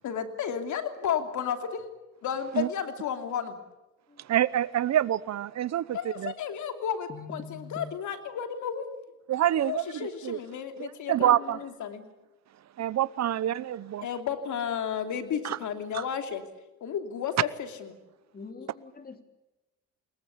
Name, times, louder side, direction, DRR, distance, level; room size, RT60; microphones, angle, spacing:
voice 1, 0.0-1.9 2.2-3.6 5.9-8.8 9.5-12.1 13.3-13.4 14.0-16.4 16.8-17.3 17.6-18.0, left 8 dB, 75° left, 7 dB, 3.0 m, -33 dB
voice 2, 4.3-6.3 9.3-10.4 10.8-11.6 12.8-14.1 15.4-15.6 15.9-16.0, right 11 dB, 60° right, 20 dB, 0.9 m, -27 dB
voice 3, 7.1-7.8 18.3-19.2, left 4 dB, 30° left, 7 dB, 3.5 m, -43 dB
27.0 x 21.5 x 8.6 m, 1.0 s
cardioid pair, 90°, 30 cm